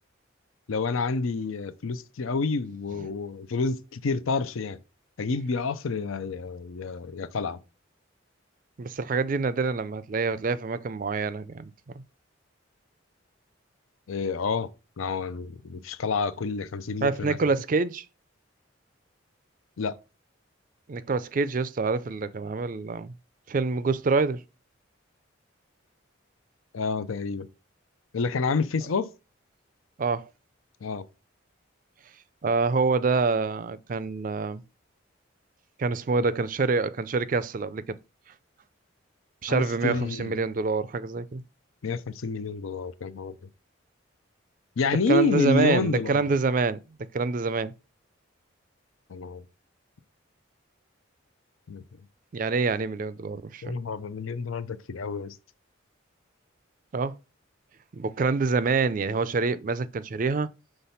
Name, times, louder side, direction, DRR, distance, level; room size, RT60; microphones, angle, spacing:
voice 1, 0.7-4.8 5.2-7.6 14.1-14.7 15.0-17.5 19.8-20.0 26.7-27.5 28.1-29.1 30.8-31.1 39.5-40.4 41.8-43.3 44.8-46.2 49.1-49.4 51.7-51.8 53.6-55.4, left 4 dB, 85° left, 0.5 m, -29 dB
voice 2, 8.8-11.7 17.0-18.1 20.9-23.1 23.5-24.4 30.0-30.3 32.4-34.6 35.8-38.0 39.4-41.4 45.1-46.8 47.1-47.7 52.3-53.8 56.9-57.1 57.9-60.5, right 4 dB, 40° right, 0.4 m, -26 dB
5.8 x 3.3 x 5.6 m
head